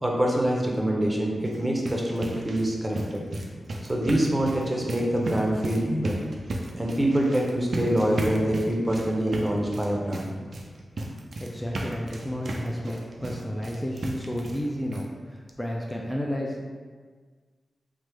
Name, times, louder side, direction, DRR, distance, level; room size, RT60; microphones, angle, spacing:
voice 1, 0.0-3.2 3.8-6.2 6.7-10.3, right 1 dB, 20° right, -2 dB, 0.7 m, -25 dB
sound 1, 1.3-14.7 14.9-15.1 15.5-15.6 15.9-16.0, right 1 dB, 65° right, 0.4 m, -35 dB
voice 2, 11.4-16.6, equal, 10° left, -2 dB, 0.4 m, -32 dB
3.2 x 2.0 x 3.2 m, 1.5 s
cardioid pair, 50°, 0 cm